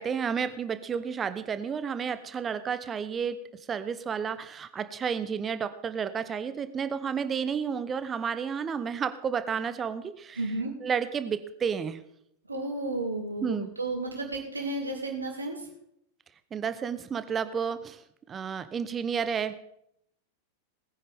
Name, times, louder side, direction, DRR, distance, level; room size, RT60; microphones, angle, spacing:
voice 1, 0.0-3.4 3.7-10.4 10.8-12.0 13.4-13.7 16.5-18.0 18.3-19.5, right 7 dB, 20° right, 12 dB, 0.9 m, -31 dB
voice 2, 10.4-10.7 12.5-15.6, right 2 dB, 80° right, 0 dB, 3.2 m, -32 dB
19.5 x 9.9 x 3.6 m, 0.72 s
figure-of-eight pair, 90°, 0 cm